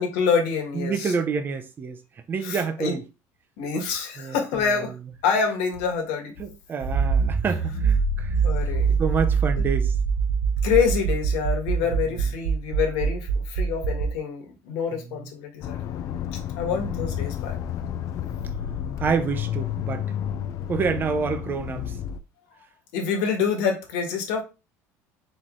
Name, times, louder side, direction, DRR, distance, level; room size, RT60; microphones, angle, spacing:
voice 1, 0.0-1.1 2.4-3.0 3.6-4.9 5.2-6.3 8.4-9.0 9.6-9.7 10.6-17.6 22.9-24.4, left 6 dB, 85° left, 1.5 m, -26 dB
voice 2, 0.7-2.0 2.3-3.0 4.2-4.8 6.4-8.4 9.0-9.9 14.9-15.0 19.0-20.1 20.7-22.0, right 5 dB, 30° right, 0.7 m, -28 dB
Accelerating revving vroom, 6.8-14.1, right 5 dB, 70° right, 1.4 m, -24 dB
Accelerating revving vroom 2, 15.6-22.2, left 10 dB, 55° left, 0.5 m, -31 dB
4.3 x 3.3 x 3.7 m
cardioid pair, 120°, 7 cm